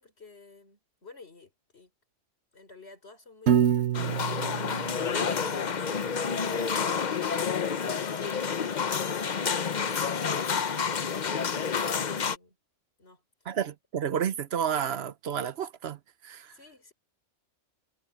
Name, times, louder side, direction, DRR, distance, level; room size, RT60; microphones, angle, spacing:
voice 1, 0.0-1.9 2.5-9.8 13.0-13.5 16.5-16.9, left 4 dB, 60° left, 4.6 m, -52 dB
Piano, 3.5-5.7, right 9 dB, 90° right, 1.2 m, -27 dB
sound 1, 3.9-12.4, left 6 dB, 40° left, 0.8 m, -29 dB
voice 2, 13.5-16.5, right 8 dB, 60° right, 1.0 m, -31 dB
omnidirectional pair, 1.2 m